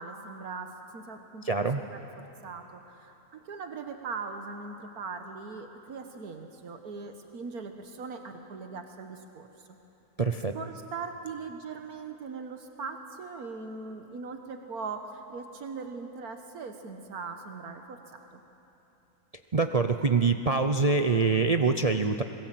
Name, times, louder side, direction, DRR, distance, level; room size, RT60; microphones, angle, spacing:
voice 1, 0.0-9.7 10.5-18.0 18.3-18.4, right 4 dB, 80° right, 5 dB, 1.7 m, -40 dB
voice 2, 1.4-1.8 10.2-10.5 19.5-22.2, right 4 dB, 40° right, 6 dB, 0.5 m, -25 dB
26.0 x 21.0 x 7.7 m, 3.0 s
omnidirectional pair, 1.6 m